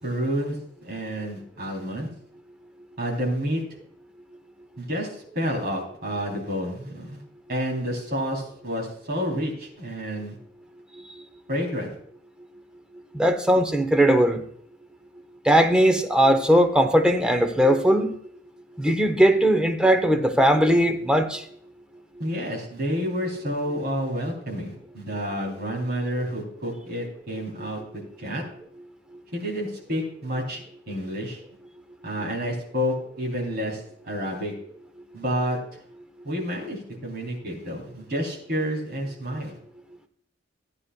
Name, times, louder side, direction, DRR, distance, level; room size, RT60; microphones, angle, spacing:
voice 1, 0.0-2.1 3.0-3.6 4.8-7.2 7.5-10.4 11.5-12.0 22.2-27.8 28.2-28.4 29.3-31.4 32.0-34.5 35.1-35.6 36.2-39.5, equal, 55° right, 0 dB, 3.4 m, -29 dB
voice 2, 13.1-14.4 15.5-18.2 18.8-21.4, equal, 5° right, 6 dB, 0.8 m, -19 dB
15.0 x 9.6 x 2.3 m, 0.65 s
head